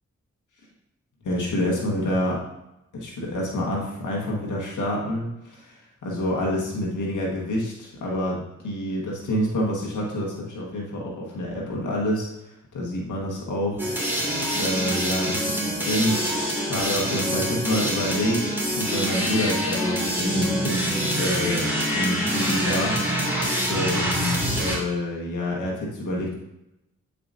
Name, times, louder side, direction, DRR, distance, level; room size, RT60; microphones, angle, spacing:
voice 1, 1.2-2.4 3.0-12.3 12.7-21.6 21.9-23.4 23.7-26.3, left 1 dB, 80° left, -3 dB, 1.6 m, -28 dB
sound 1, 13.8-24.8, equal, 5° right, 2.4 m, -25 dB
8.5 x 5.0 x 2.7 m, 0.89 s
cardioid pair, 50°, 30 cm